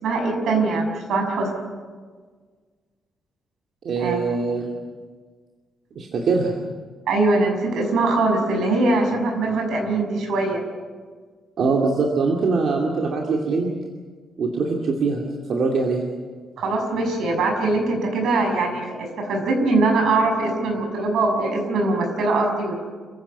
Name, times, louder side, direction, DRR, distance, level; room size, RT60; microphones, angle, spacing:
voice 1, 0.0-1.5 4.0-4.2 7.1-10.6 16.6-22.8, right 2 dB, 70° right, 3 dB, 6.4 m, -22 dB
voice 2, 3.8-4.7 6.0-6.6 11.6-13.7 14.4-15.2 15.5-16.0, right 4 dB, 50° right, 0 dB, 2.5 m, -22 dB
28.5 x 16.0 x 8.4 m, 1.5 s
wide cardioid pair, 180°, 0 cm